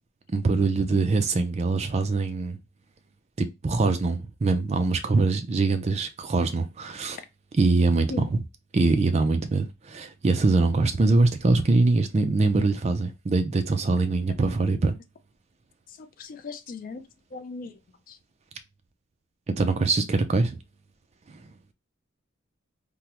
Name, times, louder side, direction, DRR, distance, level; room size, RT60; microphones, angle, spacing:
voice 1, 0.3-2.6 3.4-7.2 7.6-8.4 8.7-14.9 19.5-20.6, right 3 dB, 30° right, 0.4 m, -23 dB
voice 2, 15.9-17.0 17.3-17.8 18.1-18.2, left 4 dB, 45° left, 0.3 m, -38 dB
3.5 x 2.0 x 2.9 m
head